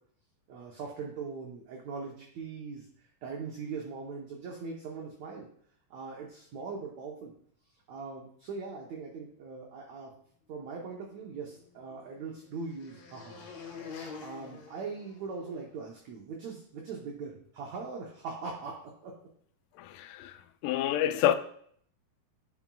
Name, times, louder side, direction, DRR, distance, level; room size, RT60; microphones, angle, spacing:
voice 1, 0.5-5.5 5.9-7.3 7.9-10.1 10.5-13.5 14.2-18.8 19.0-19.2, right 4 dB, 80° right, 1.6 m, -41 dB
sound 1, 11.1-15.7, left 5 dB, 65° left, 2.8 m, -47 dB
voice 2, 19.8-21.3, left 11 dB, 85° left, 1.9 m, -28 dB
9.6 x 6.0 x 2.3 m
omnidirectional pair, 4.4 m